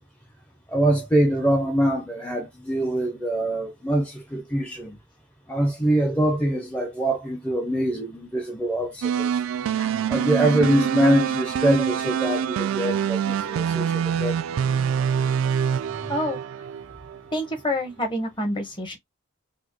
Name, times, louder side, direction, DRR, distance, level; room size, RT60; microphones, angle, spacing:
voice 1, 0.7-5.0 5.5-9.4 9.8-14.4, right 1 dB, 5° left, 0.5 m, -24 dB
sound 1, 9.0-17.2, right 8 dB, 75° right, 0.3 m, -25 dB
voice 2, 17.3-19.0, left 1 dB, 25° left, 1.1 m, -27 dB
4.1 x 2.0 x 3.0 m
head